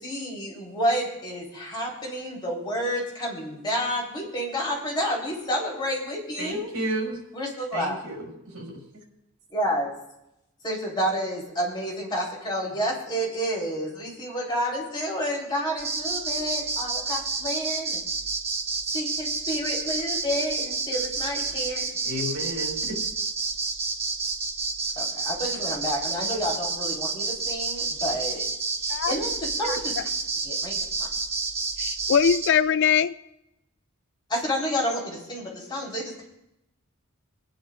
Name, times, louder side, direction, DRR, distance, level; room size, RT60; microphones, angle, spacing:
voice 1, 0.0-6.7 7.3-8.0 9.5-9.9 10.6-18.0 18.9-22.0 25.0-28.4 28.8-29.3 29.6-29.9 30.4-30.7 34.3-36.2, equal, 20° left, -4 dB, 3.5 m, -29 dB
voice 2, 6.4-7.2 7.7-8.8 22.0-23.0, right 1 dB, 80° right, 0 dB, 4.7 m, -32 dB
sound 1, 15.8-32.5, right 4 dB, 30° right, 1.0 m, -29 dB
voice 3, 31.8-33.1, left 7 dB, 55° left, 14 dB, 0.3 m, -22 dB
24.0 x 10.0 x 2.5 m, 0.86 s
head